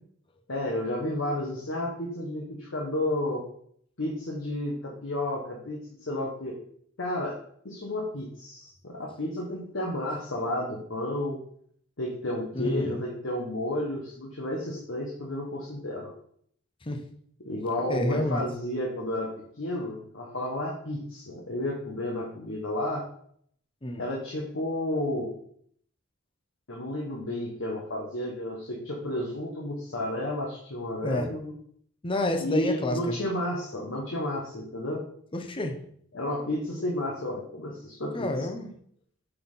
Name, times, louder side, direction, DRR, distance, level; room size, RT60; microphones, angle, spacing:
voice 1, 0.5-3.4 4.0-6.6 7.0-7.4 7.6-11.4 12.0-16.1 17.4-19.3 19.6-23.0 24.0-25.3 26.7-31.5 32.4-35.0 36.1-38.3, left 1 dB, 65° left, -2 dB, 1.2 m, -31 dB
voice 2, 12.5-13.1 16.8-17.0 17.9-18.4 23.8-24.1 31.0-31.3 32.0-33.2 35.3-35.8 38.1-38.7, left 1 dB, 25° left, 5 dB, 0.8 m, -29 dB
5.6 x 4.3 x 5.5 m, 0.65 s
head